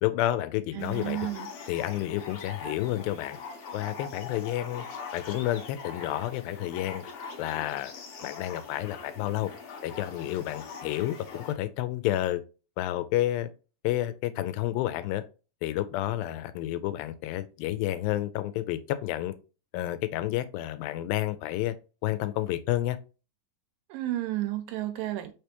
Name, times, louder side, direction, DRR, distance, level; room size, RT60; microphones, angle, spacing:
voice 1, 0.0-1.2 1.7-3.4 3.7-4.9 5.1-7.0 7.4-7.9 8.2-9.5 9.8-12.4 12.8-13.5 13.8-15.2 15.6-19.3 19.7-21.8 22.0-23.0, left 14 dB, 90° left, 2.3 m, -30 dB
voice 2, 0.7-1.5 23.9-25.3, right 14 dB, 90° right, 2.4 m, -32 dB
sound 1, 0.8-11.5, left 5 dB, 65° left, 1.6 m, -42 dB
5.4 x 3.4 x 2.9 m
omnidirectional pair, 4.1 m